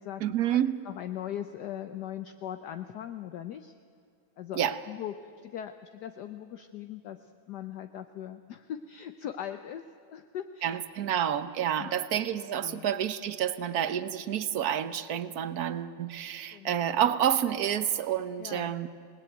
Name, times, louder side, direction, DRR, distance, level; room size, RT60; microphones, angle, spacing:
voice 1, 0.2-0.8 4.5-4.8 10.6-18.9, right 10 dB, 60° right, 13 dB, 1.3 m, -29 dB
voice 2, 0.8-3.7 4.4-9.8 10.1-10.8 11.8-12.1 12.6-12.9 16.5-16.9 18.4-18.7, left 10 dB, 65° left, 9 dB, 1.3 m, -40 dB
27.5 x 19.5 x 9.1 m, 2.3 s
omnidirectional pair, 2.0 m